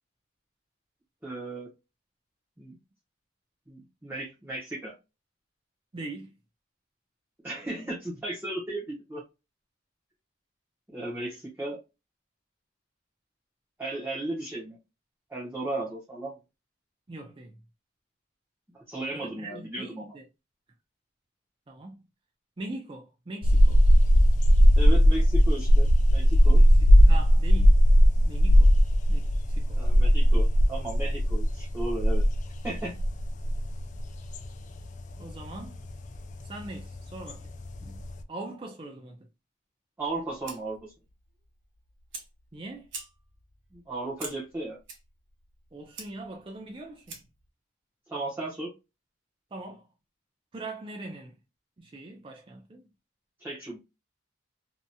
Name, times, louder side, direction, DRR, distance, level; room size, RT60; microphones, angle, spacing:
voice 1, 1.2-1.7 2.6-2.8 3.7-4.9 7.4-9.2 10.9-11.8 13.8-14.8 15.3-16.3 18.7-20.2 24.8-26.6 29.8-32.2 32.6-33.0 40.0-40.9 43.7-44.8 48.1-48.7 53.4-53.8, right 2 dB, 10° right, 0.8 m, -35 dB
voice 2, 5.9-6.3 17.1-17.6 19.1-20.2 21.7-22.0 22.6-23.8 26.5-26.7 27.0-27.8 28.2-28.7 29.1-29.8 35.2-35.8 36.4-37.5 37.8-39.3 42.5-42.9 45.7-47.2 49.5-49.9 50.5-51.4 51.8-52.9, right 2 dB, 25° right, 0.4 m, -41 dB
sound 1, 23.4-38.2, equal, 40° left, 0.3 m, -20 dB
Fire, 40.0-47.5, right 4 dB, 70° right, 0.9 m, -47 dB
2.8 x 2.7 x 2.2 m
head